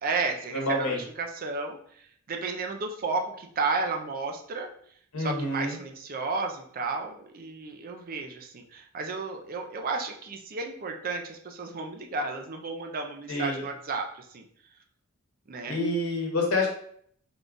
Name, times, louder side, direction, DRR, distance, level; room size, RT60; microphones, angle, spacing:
voice 1, 0.0-4.7 5.2-14.5 15.5-15.8, right 4 dB, 45° right, 3 dB, 0.5 m, -33 dB
voice 2, 0.5-1.0 5.1-5.7 13.3-13.6 15.7-16.7, left 2 dB, 90° left, 0 dB, 1.0 m, -27 dB
3.8 x 2.3 x 3.8 m, 0.63 s
head